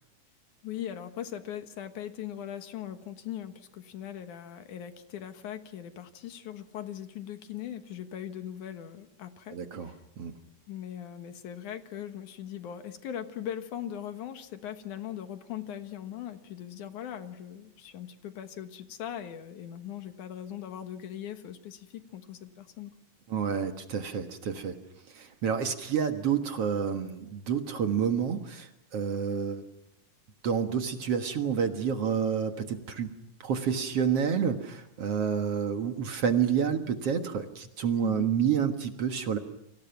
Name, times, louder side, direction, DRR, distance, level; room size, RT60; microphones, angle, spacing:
voice 1, 0.6-10.0 10.7-22.9 38.0-38.3, left 10 dB, 75° left, 9 dB, 2.7 m, -40 dB
voice 2, 9.5-9.9 10.2-10.4 23.3-24.8 25.1-29.6 30.4-33.1 33.4-39.4, right 7 dB, 55° right, 6 dB, 2.3 m, -29 dB
30.0 x 25.0 x 5.9 m, 0.80 s
omnidirectional pair, 3.7 m